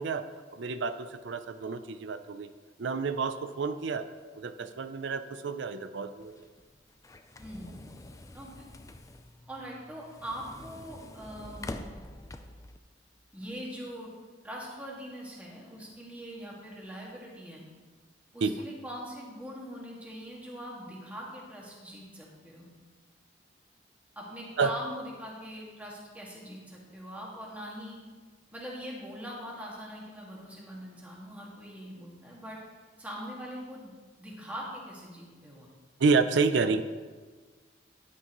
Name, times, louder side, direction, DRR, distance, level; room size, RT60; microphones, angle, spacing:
voice 1, 0.0-2.5 2.8-4.1 4.3-6.5 18.4-18.6 24.6-24.7 36.0-36.8, right 4 dB, 70° right, 10 dB, 0.5 m, -29 dB
sound 1, 6.2-12.8, left 2 dB, 15° left, 0.4 m, -46 dB
voice 2, 7.4-7.7 8.3-8.6 9.5-11.8 13.3-14.1 14.4-17.7 18.3-22.7 24.2-28.0 28.5-32.6 33.0-33.9 34.2-35.7, equal, 10° right, -4 dB, 1.8 m, -42 dB
11.0 x 9.5 x 3.0 m, 1.4 s
head